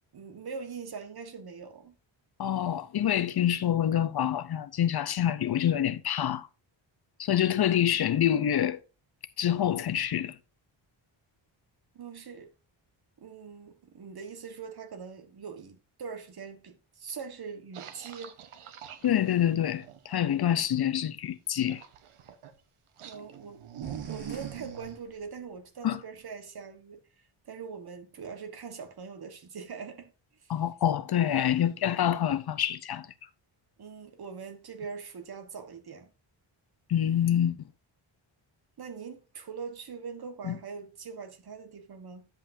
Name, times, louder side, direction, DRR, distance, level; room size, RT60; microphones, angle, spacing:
voice 1, 0.1-2.0 11.9-12.5 13.2-18.4 23.0-23.6 24.0-27.0 27.4-30.1 30.4-30.5 33.8-36.1 38.8-42.3, right 5 dB, 50° right, 1.4 m, -42 dB
voice 2, 2.4-6.5 7.2-8.8 9.4-10.4 19.0-21.8 25.8-26.0 30.5-33.1 36.9-37.6 40.4-40.6, left 10 dB, 50° left, 0.6 m, -26 dB
Dog eating, 17.7-20.2 21.7-22.6 23.0-24.9, right 10 dB, 85° right, 1.1 m, -43 dB
sound 1, 23.8-25.7, left 2 dB, 25° left, 3.7 m, -51 dB
10.5 x 7.8 x 2.6 m
wide cardioid pair, 130°, 49 cm